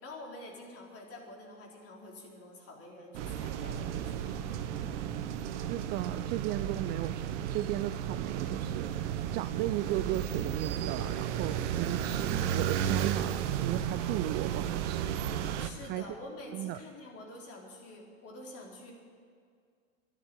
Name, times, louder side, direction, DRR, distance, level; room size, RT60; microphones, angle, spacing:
voice 1, 0.0-5.0 15.6-18.9, left 1 dB, 35° left, 0 dB, 4.0 m, -48 dB
sound 1, 3.1-15.7, right 9 dB, 60° right, 1.1 m, -33 dB
voice 2, 5.7-15.1 15.8-16.1 16.5-16.8, right 15 dB, 25° right, 12 dB, 0.3 m, -36 dB
12.5 x 11.5 x 9.1 m, 2.1 s
hypercardioid pair, 95°, 40 cm